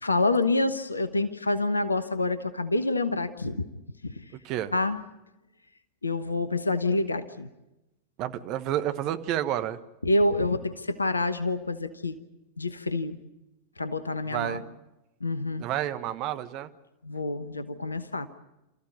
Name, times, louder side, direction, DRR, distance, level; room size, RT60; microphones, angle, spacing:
voice 1, 0.0-3.6 4.0-4.2 4.7-5.0 6.0-7.5 10.0-12.2 12.6-13.2 13.8-14.6 15.2-15.6 17.0-18.3, left 2 dB, 80° left, 12 dB, 1.1 m, -27 dB
voice 2, 8.2-9.8 14.3-14.6 15.6-16.7, right 12 dB, 40° right, 10 dB, 1.3 m, -30 dB
28.0 x 14.5 x 9.4 m, 0.98 s
figure-of-eight pair, 90°, 0 cm